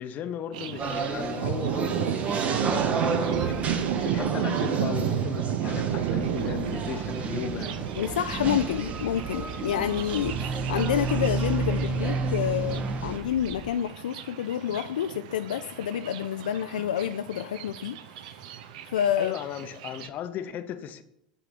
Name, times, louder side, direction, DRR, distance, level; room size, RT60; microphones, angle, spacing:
voice 1, 0.0-3.6 3.9-7.7 8.6-8.7 19.2-21.0, left 10 dB, 40° left, 0.7 m, -37 dB
Thunder, 0.5-20.1, right 9 dB, 60° right, 0.7 m, -33 dB
sound 1, 0.8-13.2, right 4 dB, 30° right, 1.0 m, -31 dB
Bus, 7.0-13.7, equal, 5° left, 0.8 m, -43 dB
voice 2, 8.0-18.0 18.8-19.3, left 10 dB, 70° left, 0.4 m, -28 dB
7.7 x 4.9 x 6.6 m
figure-of-eight pair, 85°, 5 cm